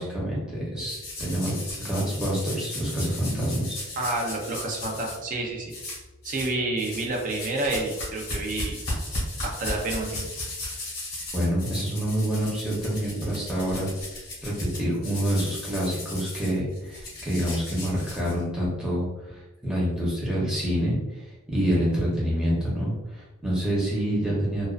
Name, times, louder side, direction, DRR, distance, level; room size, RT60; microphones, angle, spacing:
voice 1, 0.0-3.8 10.6-10.8 11.3-21.2 21.5-24.7, equal, 5° right, -7 dB, 0.7 m, -27 dB
sound 1, 0.8-5.2 5.7-6.5 6.8-18.7, left 1 dB, 45° left, 0.9 m, -36 dB
voice 2, 4.0-5.7 6.2-8.8 9.4-10.2, right 2 dB, 40° right, 0 dB, 0.5 m, -29 dB
2.3 x 2.3 x 2.3 m, 1.1 s
head